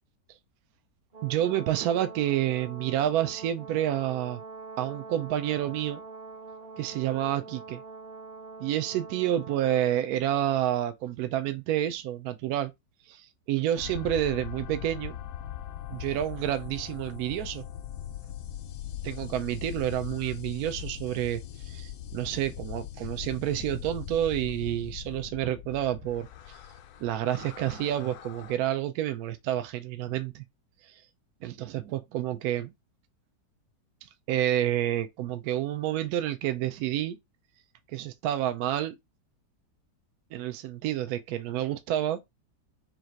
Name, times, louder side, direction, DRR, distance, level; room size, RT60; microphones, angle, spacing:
Brass instrument, 1.1-10.1, right 4 dB, 45° right, 0.9 m, -44 dB
voice 1, 1.2-4.4 4.8-6.0 6.8-7.8 8.6-12.7 13.1-15.2 15.9-17.6 19.0-26.3 27.0-30.4 31.4-32.7 34.3-37.2 37.9-38.9 40.3-42.2, right 12 dB, 70° right, 1.0 m, -29 dB
sound 1, 13.8-28.6, left 10 dB, 70° left, 1.0 m, -40 dB
4.0 x 2.5 x 4.3 m
omnidirectional pair, 1.8 m